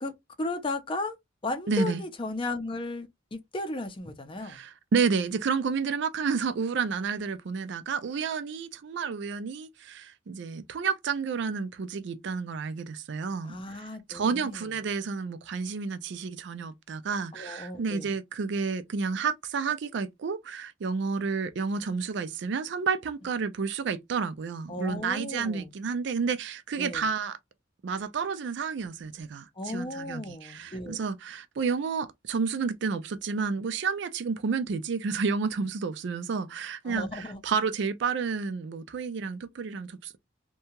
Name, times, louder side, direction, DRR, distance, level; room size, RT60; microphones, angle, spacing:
voice 1, 0.0-1.2 1.4-4.6 13.4-14.8 17.3-18.1 24.7-25.7 26.7-27.1 29.6-31.0 36.9-37.4, left 2 dB, 30° left, 0.5 m, -35 dB
voice 2, 1.7-2.0 4.4-13.8 14.1-27.4 27.8-40.2, right 5 dB, 65° right, 0.4 m, -30 dB
2.7 x 2.2 x 2.8 m
head